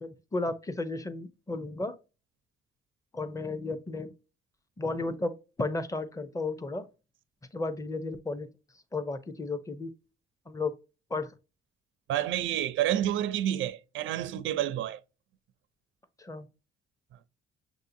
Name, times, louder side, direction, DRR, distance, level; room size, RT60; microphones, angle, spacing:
voice 1, 0.0-2.0 3.1-4.1 4.8-6.9 7.5-8.5 8.9-10.0 10.5-10.7 11.1-11.3 16.2-16.5, left 3 dB, 15° left, 0.6 m, -33 dB
voice 2, 12.1-15.0, right 11 dB, 75° right, 0.5 m, -29 dB
6.3 x 2.7 x 2.6 m
cardioid pair, 90°, 20 cm